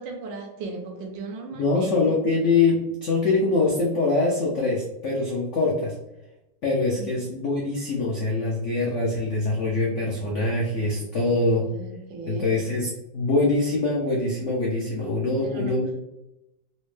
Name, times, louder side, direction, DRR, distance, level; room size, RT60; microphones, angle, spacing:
voice 1, 0.0-2.2 6.9-7.1 10.9-12.5 15.4-15.8, right 3 dB, 80° right, 2 dB, 1.4 m, -37 dB
voice 2, 1.5-5.9 6.6-11.6 12.3-16.0, left 3 dB, 80° left, -3 dB, 0.6 m, -24 dB
4.2 x 2.1 x 3.1 m, 0.91 s
omnidirectional pair, 2.0 m